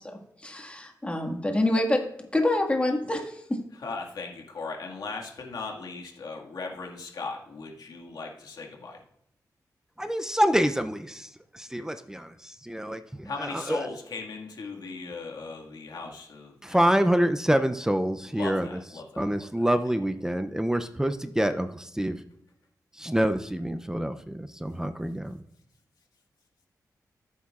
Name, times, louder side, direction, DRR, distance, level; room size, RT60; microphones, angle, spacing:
voice 1, 0.4-2.0 2.3-3.6, left 1 dB, 20° left, 2 dB, 1.7 m, -26 dB
voice 2, 3.7-9.0 13.2-17.0 18.3-19.7, left 4 dB, 70° left, 0 dB, 1.9 m, -38 dB
voice 3, 10.0-13.9 16.6-18.8 19.2-22.2 23.0-25.4, equal, 10° right, 9 dB, 0.5 m, -27 dB
14.5 x 8.4 x 2.4 m, 0.75 s
wide cardioid pair, 95°, 7 cm